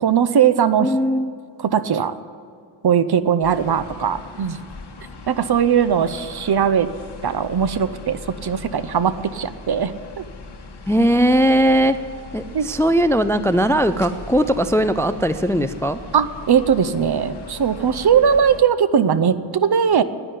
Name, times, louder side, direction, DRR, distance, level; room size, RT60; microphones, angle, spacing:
voice 1, 0.0-0.9 1.6-2.1 2.8-4.6 5.3-6.9 7.2-10.2 12.5-12.7 16.1-20.0, right 7 dB, 55° right, 13 dB, 0.7 m, -19 dB
voice 2, 0.8-1.3 10.9-12.0 12.3-16.0, equal, 5° left, 12 dB, 0.3 m, -18 dB
sound 1, 3.4-18.6, left 3 dB, 55° left, 1.4 m, -39 dB
10.0 x 9.9 x 9.9 m, 2.2 s
wide cardioid pair, 105°, 47 cm